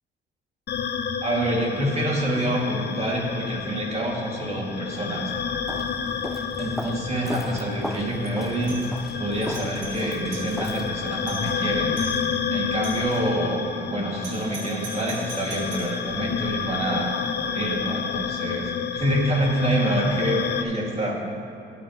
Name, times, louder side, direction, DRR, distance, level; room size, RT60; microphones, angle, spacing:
sound 1, 0.7-20.6, left 6 dB, 55° left, 0.8 m, -30 dB
voice 1, 1.2-5.3 6.6-8.8 9.2-12.0 12.5-17.2 17.4-21.2, right 1 dB, 35° right, -2 dB, 2.5 m, -27 dB
Walk footsteps, 5.6-11.2, equal, ahead, 0.4 m, -37 dB
Doorbell, 8.6-8.9 9.3-10.6 11.0-11.1 11.3-11.6 12.0-12.2 12.8-13.2 14.2-16.0, right 2 dB, 70° right, 2.4 m, -40 dB
16.5 x 8.2 x 3.2 m, 2.7 s
cardioid pair, 90°, 20 cm